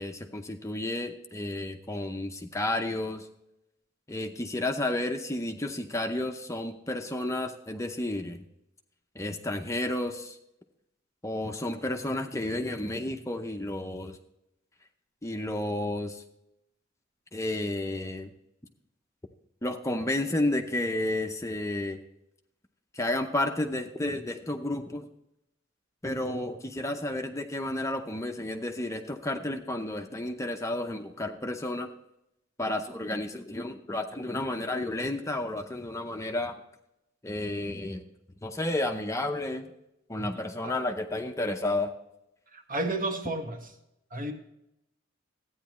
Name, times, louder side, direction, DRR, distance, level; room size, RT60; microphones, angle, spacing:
voice 1, 0.0-3.3 4.1-8.4 9.2-10.3 11.2-14.2 15.2-16.2 17.3-18.3 19.6-22.0 22.9-25.1 26.0-31.9 32.6-36.6 37.2-38.0 38.4-39.7 40.1-41.9, left 1 dB, 15° left, 5 dB, 0.6 m, -31 dB
voice 2, 42.5-43.7 44.1-44.3, right 2 dB, 45° right, 4 dB, 1.6 m, -32 dB
14.0 x 9.4 x 3.1 m, 0.83 s
head